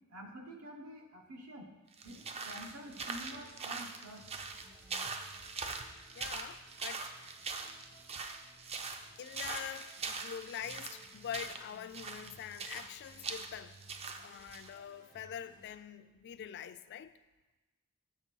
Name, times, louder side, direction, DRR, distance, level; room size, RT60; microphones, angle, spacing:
voice 1, 0.1-1.7 2.0-4.3, right 1 dB, 75° right, 1.1 m, -48 dB
sound 1, 1.9-14.7, right 4 dB, 30° right, 0.4 m, -42 dB
sound 2, 2.0-15.8, equal, 55° right, 2.1 m, -61 dB
voice 2, 6.1-7.1 8.1-8.5 9.2-13.8 14.2-17.1, left 9 dB, 50° left, 0.3 m, -45 dB
7.0 x 6.1 x 4.5 m
head